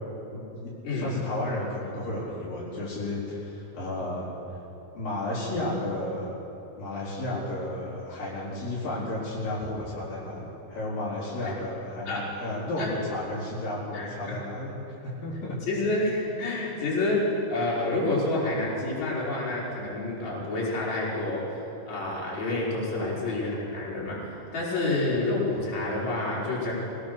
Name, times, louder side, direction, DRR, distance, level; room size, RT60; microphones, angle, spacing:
voice 1, 0.3-4.3 4.9-6.3 6.8-15.6 23.0-23.1, left 1 dB, 80° left, -7 dB, 5.9 m, -33 dB
voice 2, 13.9-14.4 15.7-21.6 21.9-24.3 24.5-26.7, left 2 dB, 55° left, -6 dB, 6.0 m, -28 dB
25.5 x 18.5 x 6.7 m, 2.9 s
omnidirectional pair, 3.9 m